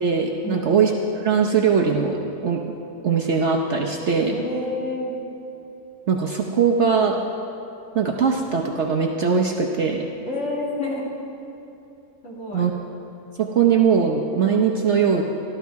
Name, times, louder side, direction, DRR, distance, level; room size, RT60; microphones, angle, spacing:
voice 1, 0.0-2.2 2.4-2.6 3.0-4.3 6.1-7.2 7.9-10.1 12.5-12.7 13.4-15.2, right 6 dB, 55° right, 1 dB, 0.9 m, -20 dB
voice 2, 4.3-5.1 10.3-11.0 12.2-12.7, left 1 dB, 50° left, -5 dB, 2.8 m, -28 dB
14.5 x 12.5 x 4.6 m, 2.8 s
omnidirectional pair, 1.7 m